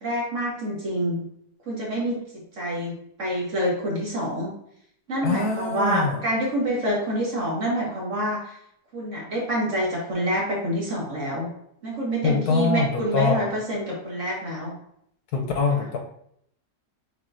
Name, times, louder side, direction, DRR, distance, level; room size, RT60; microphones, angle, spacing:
voice 1, 0.0-1.2 1.7-2.2 2.6-2.9 3.2-4.5 5.1-8.5 8.9-11.5 11.8-14.7 15.7-15.9, right 1 dB, 45° right, -4 dB, 1.6 m, -27 dB
voice 2, 5.2-6.2 12.2-13.5 15.3-16.0, left 4 dB, 70° left, 2 dB, 1.1 m, -24 dB
6.7 x 3.0 x 2.6 m, 0.71 s
omnidirectional pair, 1.9 m